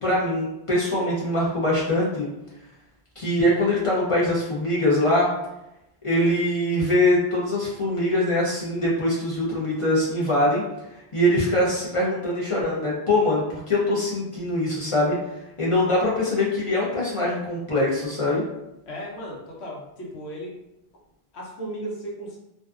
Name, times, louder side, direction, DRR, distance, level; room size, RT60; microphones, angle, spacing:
voice 1, 0.0-2.3 3.2-5.3 6.0-10.6 11.1-15.2 15.6-18.4, left 1 dB, 40° left, -6 dB, 0.5 m, -23 dB
voice 2, 18.9-20.5 21.3-22.4, right 1 dB, 80° left, -3 dB, 1.0 m, -35 dB
2.5 x 2.3 x 2.3 m, 0.89 s
omnidirectional pair, 1.1 m